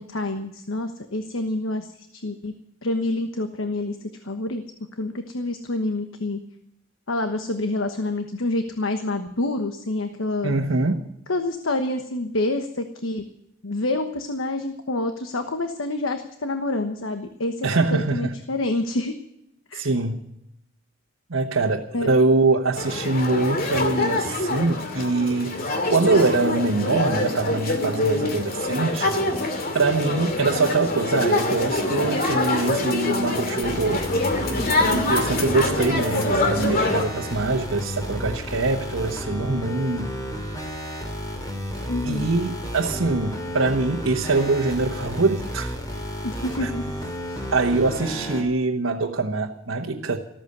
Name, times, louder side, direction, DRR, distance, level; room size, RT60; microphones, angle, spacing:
voice 1, 0.0-2.5 2.8-4.6 5.0-6.4 7.1-10.5 11.3-13.2 13.6-19.1 19.7-19.9 21.9-22.1 34.9-35.2 41.9-42.3 46.2-46.8 47.3-47.5, left 2 dB, 85° left, 7 dB, 1.2 m, -27 dB
voice 2, 10.4-11.1 17.6-18.3 19.7-20.3 21.3-25.6 25.9-29.1 29.7-34.1 35.1-40.2 42.0-45.8 46.6-46.7 47.5-50.2, right 3 dB, 80° right, 0 dB, 1.2 m, -23 dB
sound 1, 22.8-37.0, left 2 dB, 50° left, 2.5 m, -25 dB
sound 2, 33.6-48.4, equal, 20° left, 3.1 m, -32 dB
14.0 x 14.0 x 6.7 m, 0.81 s
head